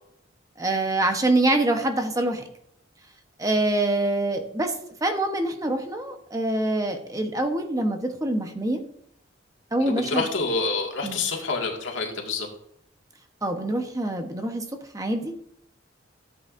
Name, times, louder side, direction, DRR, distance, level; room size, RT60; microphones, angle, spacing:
voice 1, 0.6-2.4 3.4-4.7 5.0-8.8 9.7-10.2 11.0-11.2 13.4-14.6 14.9-15.4, right 2 dB, 20° right, 5 dB, 0.9 m, -25 dB
voice 2, 9.9-12.5, left 4 dB, 80° left, 1 dB, 2.0 m, -27 dB
13.5 x 7.9 x 2.6 m, 0.71 s
head